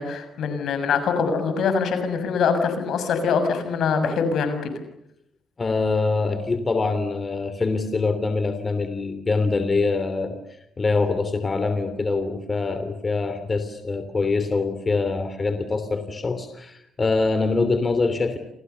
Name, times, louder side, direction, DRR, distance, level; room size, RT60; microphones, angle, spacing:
voice 1, 0.0-4.7, left 5 dB, 70° left, 8 dB, 6.5 m, -23 dB
voice 2, 5.6-10.4 10.8-18.4, left 3 dB, 30° left, 9 dB, 3.1 m, -24 dB
29.5 x 27.5 x 6.9 m, 0.77 s
cardioid pair, 90°, 0 cm